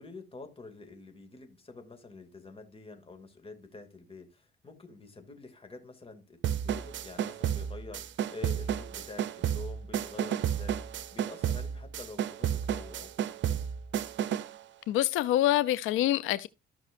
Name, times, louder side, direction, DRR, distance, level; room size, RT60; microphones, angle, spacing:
voice 1, 0.0-13.7, left 3 dB, 30° left, 2.5 m, -47 dB
sound 1, 6.4-14.6, right 9 dB, 70° right, 0.8 m, -32 dB
voice 2, 14.9-16.5, left 14 dB, 90° left, 0.5 m, -26 dB
14.5 x 6.0 x 2.6 m
cardioid pair, 90°, 20 cm